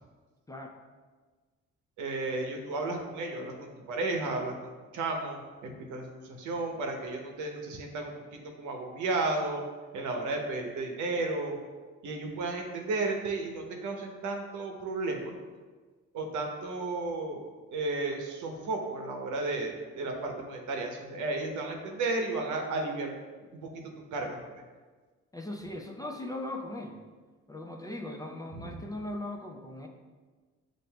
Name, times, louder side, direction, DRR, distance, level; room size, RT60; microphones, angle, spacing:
voice 1, 2.0-9.6 9.9-11.6 12.0-15.3 16.1-23.1 23.5-23.8 24.1-24.6 28.7-28.8, right 2 dB, 80° right, 2 dB, 0.8 m, -33 dB
voice 2, 25.3-27.0 27.5-29.9, left 1 dB, 10° left, 1 dB, 0.4 m, -39 dB
7.3 x 2.6 x 2.2 m, 1.4 s
cardioid pair, 90°, 30 cm